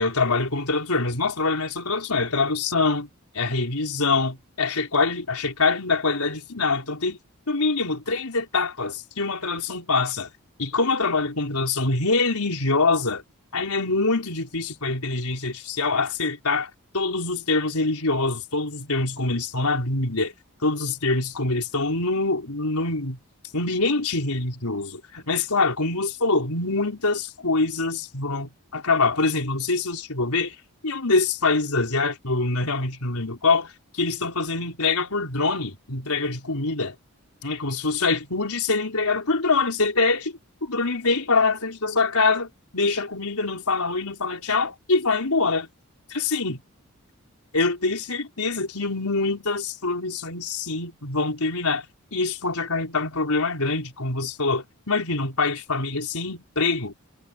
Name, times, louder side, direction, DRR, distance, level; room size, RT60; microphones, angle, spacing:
voice 1, 0.0-3.1 3.3-7.2 7.5-10.3 10.6-13.2 13.5-20.3 20.6-23.2 23.5-30.5 30.8-36.9 37.4-40.3 40.6-45.7 46.1-46.6 47.5-51.9 52.1-56.9, left 3 dB, 80° left, 4.4 m, -24 dB
head